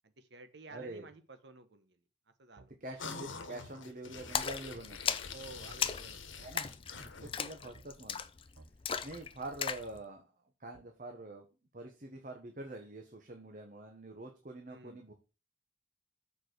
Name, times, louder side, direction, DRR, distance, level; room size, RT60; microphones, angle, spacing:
voice 1, 0.2-2.0 2.4-2.8 5.3-6.5 7.6-7.8 14.7-15.0, right 3 dB, 60° right, 8 dB, 1.1 m, -53 dB
voice 2, 0.7-1.1 2.8-5.2 6.4-6.7 7.2-8.3 9.0-10.3 10.6-11.5 11.7-15.1, right 2 dB, 45° right, 3 dB, 1.1 m, -45 dB
sound 1, 2.6-2.7 3.4-3.5 4.2-4.3 4.7-4.9 5.6-5.7 6.4-6.5 6.9-7.1 7.7-7.9 8.6-8.7 9.1-9.2 9.9-10.1 10.7-10.9, right 3 dB, 80° right, 0.8 m, -57 dB
sound 2, 3.0-7.5, left 5 dB, 85° left, 1.2 m, -46 dB
Splash splatter, 4.3-9.9, left 7 dB, 30° left, 0.4 m, -37 dB
6.8 x 4.9 x 6.6 m, 0.32 s
head